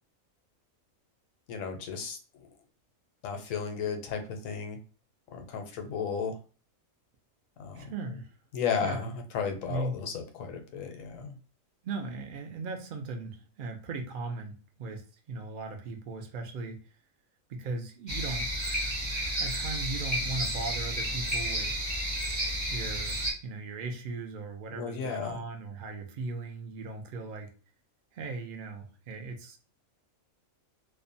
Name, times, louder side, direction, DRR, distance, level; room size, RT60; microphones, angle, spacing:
voice 1, 1.5-2.5 3.2-4.8 5.3-6.4 7.6-7.9 8.5-11.4 24.7-25.4, left 6 dB, 80° left, 5 dB, 1.0 m, -34 dB
voice 2, 7.7-8.3 8.8-9.1 9.7-10.0 11.8-14.5 14.8-16.8 17.5-18.5 19.4-21.7 22.7-27.5 28.1-29.6, right 3 dB, 75° right, 4 dB, 0.4 m, -38 dB
sound 1, 18.1-23.3, right 1 dB, 30° right, 0.6 m, -31 dB
2.6 x 2.1 x 2.5 m, 0.37 s
omnidirectional pair, 1.4 m